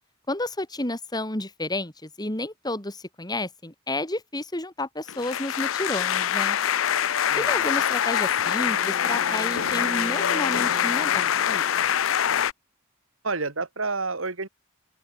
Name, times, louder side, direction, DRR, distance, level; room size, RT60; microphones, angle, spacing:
voice 1, 0.3-6.6 7.4-11.9, left 1 dB, 20° left, 3.1 m, -31 dB
sound 1, 5.1-12.5, left 9 dB, 80° left, 0.5 m, -24 dB
voice 2, 7.3-7.7 13.2-14.5, right 3 dB, 80° right, 2.6 m, -29 dB
Wind instrument woodwind instrument, 8.5-11.8, right 3 dB, 45° right, 1.4 m, -40 dB
open air
head